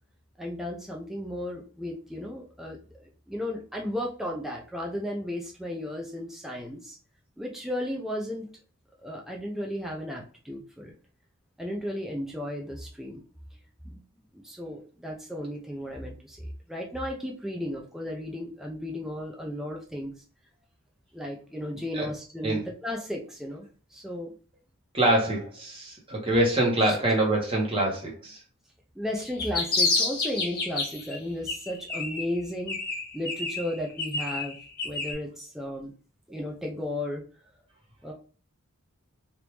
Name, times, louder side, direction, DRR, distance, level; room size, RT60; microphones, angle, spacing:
voice 1, 0.4-7.0 7.4-8.5 9.0-10.9 11.6-13.2 13.8-14.0 14.3-20.1 21.1-24.3 26.8-27.0 29.0-32.8 33.1-34.6 34.8-35.9 36.3-37.2 38.0-38.1, left 1 dB, ahead, -1 dB, 0.4 m, -34 dB
voice 2, 24.9-28.4, right 1 dB, 25° right, -1 dB, 1.1 m, -25 dB
sound 1, 29.2-31.1 31.5-32.4 32.7-35.1, left 3 dB, 45° left, 1.5 m, -29 dB
3.4 x 2.6 x 2.9 m, 0.39 s
head